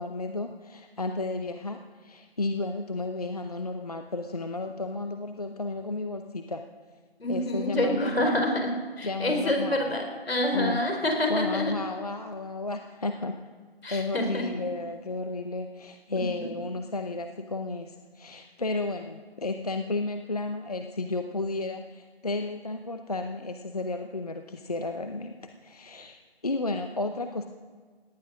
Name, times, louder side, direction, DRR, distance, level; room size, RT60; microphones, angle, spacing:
voice 1, 0.0-6.6 7.3-8.4 9.0-9.8 10.5-10.8 11.3-13.4 13.9-26.2 26.4-27.5, left 2 dB, 40° left, 6 dB, 0.7 m, -33 dB
voice 2, 7.2-11.7 13.8-14.6 16.1-16.6, left 1 dB, 70° left, 3 dB, 4.4 m, -27 dB
18.0 x 11.0 x 6.2 m, 1.5 s
figure-of-eight pair, 170°, 31 cm